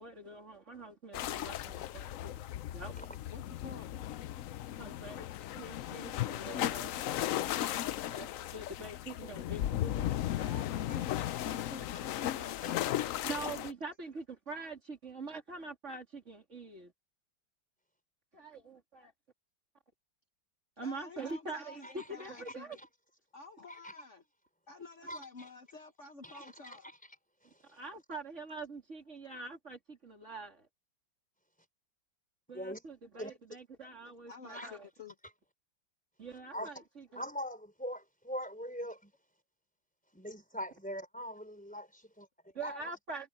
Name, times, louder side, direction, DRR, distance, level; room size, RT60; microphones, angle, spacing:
voice 1, 0.0-2.5 2.7-3.0 4.8-7.0 8.1-10.2 13.2-16.9 18.3-19.1 20.8-22.8 27.7-30.7 32.5-34.9 36.2-37.2 42.5-43.3, right 3 dB, 40° right, 3.2 m, -44 dB
sound 1, 1.1-13.7, left 12 dB, 75° left, 0.7 m, -36 dB
voice 2, 3.3-3.9 10.4-12.8 20.8-22.7 23.3-24.2 24.7-26.9 34.3-35.1, left 4 dB, 45° left, 1.4 m, -50 dB
voice 3, 25.1-25.5 26.2-27.0 27.4-27.8 32.5-32.8 33.2-33.3 34.5-34.7 36.5-36.7 37.2-39.1 40.1-42.8, equal, 5° left, 4.2 m, -42 dB
omnidirectional pair, 2.0 m